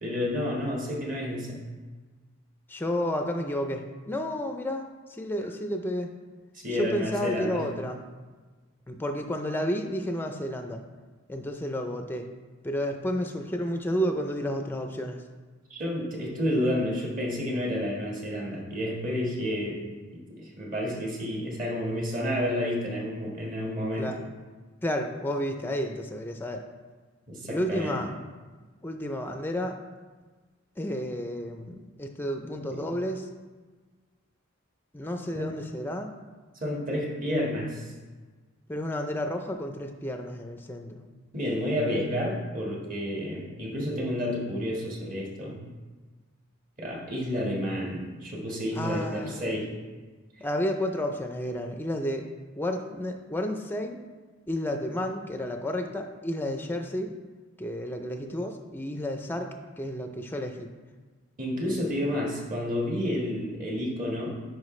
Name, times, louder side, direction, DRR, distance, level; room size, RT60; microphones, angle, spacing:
voice 1, 0.0-1.6 6.5-7.6 15.7-19.8 20.1-24.1 27.3-28.0 35.3-35.5 36.6-37.9 41.3-45.6 46.8-49.7 50.4-50.5 61.4-64.4, left 1 dB, 40° right, -2 dB, 1.5 m, -30 dB
voice 2, 2.7-6.1 6.7-8.0 8.9-10.8 11.3-12.3 12.6-15.2 24.0-24.2 24.8-26.6 27.5-28.1 28.8-29.8 30.8-33.3 34.9-36.1 38.7-41.0 48.8-49.5 50.4-52.3 52.6-54.0 54.5-57.1 57.6-60.7, equal, 10° left, 5 dB, 0.4 m, -31 dB
9.8 x 4.5 x 3.2 m, 1.4 s
head